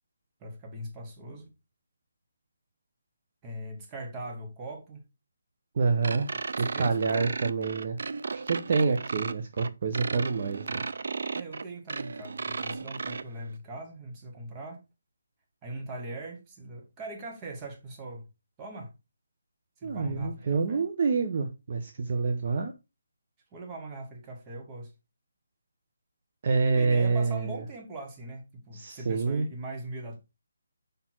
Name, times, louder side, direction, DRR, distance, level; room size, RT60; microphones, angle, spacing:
voice 1, 0.4-1.5 3.4-5.0 6.3-7.3 11.3-14.8 15.6-18.3 18.6-18.9 19.8-20.8 23.5-24.9 26.7-30.2, right 2 dB, 15° right, 1.3 m, -41 dB
voice 2, 5.7-6.3 6.6-8.0 8.3-10.8 19.8-22.7 26.4-27.6 28.7-29.4, right 4 dB, 40° right, 0.8 m, -27 dB
sound 1, 6.0-13.2, right 4 dB, 65° right, 0.4 m, -35 dB
5.2 x 4.5 x 4.4 m
hypercardioid pair, 170°, 0 cm